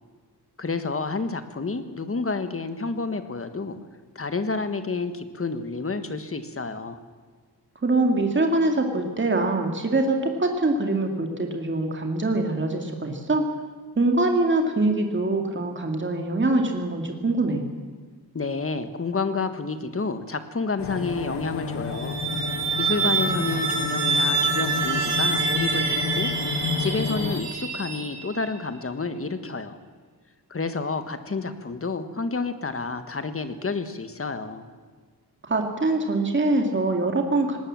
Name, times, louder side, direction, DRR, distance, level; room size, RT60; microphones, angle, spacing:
voice 1, 0.6-3.8 4.1-7.0 18.3-22.2 22.8-26.3 26.6-29.8 30.5-34.7, left 4 dB, 35° left, 10 dB, 1.5 m, -29 dB
voice 2, 7.8-13.4 14.0-17.6 23.3-23.8 35.4-37.6, right 2 dB, 30° right, 3 dB, 2.2 m, -24 dB
sound 1, 20.8-27.4, left 5 dB, 85° left, 1.7 m, -31 dB
sound 2, 21.8-28.5, right 4 dB, 90° right, 5.4 m, -26 dB
19.0 x 18.5 x 7.6 m, 1.5 s
wide cardioid pair, 135°, 39 cm